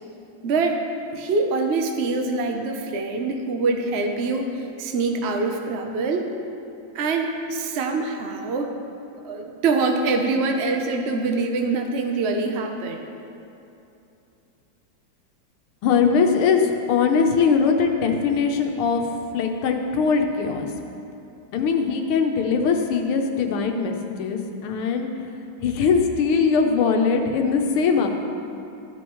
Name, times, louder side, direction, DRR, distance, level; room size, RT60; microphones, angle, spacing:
voice 1, 0.4-0.8 1.1-6.3 6.9-8.7 9.2-13.1, right 3 dB, 90° right, 4 dB, 0.5 m, -24 dB
voice 2, 15.8-19.0 19.3-20.7 21.5-25.1 25.6-28.1, left 5 dB, 85° left, 4 dB, 1.8 m, -21 dB
14.5 x 10.5 x 3.1 m, 2.8 s
omnidirectional pair, 2.3 m